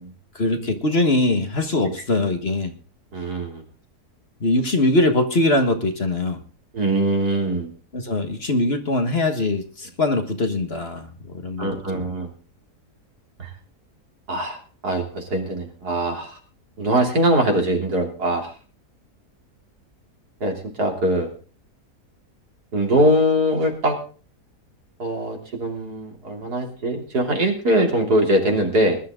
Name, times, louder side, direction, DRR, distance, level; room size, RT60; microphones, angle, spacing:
voice 1, 0.4-2.7 4.4-6.4 7.9-11.7 11.9-12.1, left 2 dB, 40° left, 6 dB, 1.7 m, -22 dB
voice 2, 3.1-3.6 6.7-7.7 11.6-12.3 13.4-13.5 14.3-16.4 16.8-18.5 20.4-21.3 22.7-24.0 25.0-29.0, right 1 dB, 75° right, 2 dB, 3.7 m, -22 dB
20.5 x 11.5 x 3.8 m, 0.39 s
omnidirectional pair, 1.7 m